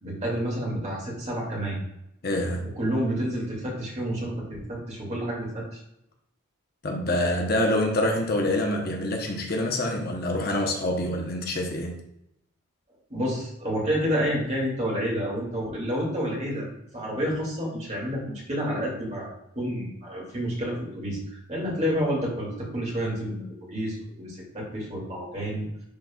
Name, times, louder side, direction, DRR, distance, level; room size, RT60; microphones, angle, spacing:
voice 1, 0.0-1.8 2.8-5.8 13.1-16.7 16.9-25.7, equal, 30° right, -3 dB, 2.3 m, -29 dB
voice 2, 2.2-2.8 6.8-12.0, left 1 dB, 45° left, 1 dB, 0.9 m, -26 dB
10.5 x 4.1 x 2.3 m, 0.81 s
head